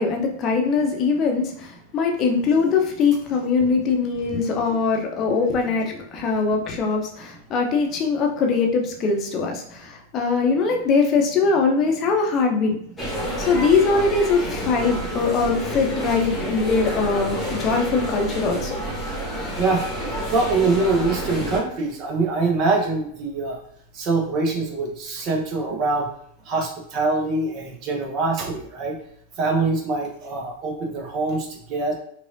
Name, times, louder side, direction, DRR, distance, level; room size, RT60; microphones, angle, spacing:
voice 1, 0.0-1.7 1.9-12.8 13.5-18.8, left 4 dB, 35° left, 2 dB, 0.7 m, -21 dB
sound 1, 13.0-21.6, equal, 10° left, 1.2 m, -29 dB
voice 2, 20.3-23.6 23.9-26.1 26.5-29.0 29.4-31.9, right 3 dB, 35° right, 1 dB, 0.9 m, -24 dB
4.8 x 2.4 x 2.5 m, 0.67 s
figure-of-eight pair, 90°, 0 cm